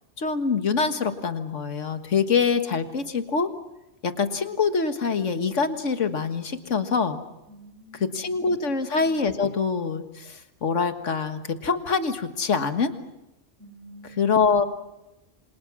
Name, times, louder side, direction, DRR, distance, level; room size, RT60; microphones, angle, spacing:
voice 1, 0.2-3.5 4.0-7.2 8.0-12.9 14.2-14.6, left 5 dB, 80° left, 8 dB, 1.9 m, -25 dB
voice 2, 7.5-8.7 13.6-14.7, right 1 dB, 70° right, 4 dB, 5.5 m, -48 dB
27.5 x 26.0 x 6.2 m, 0.95 s
omnidirectional pair, 1.3 m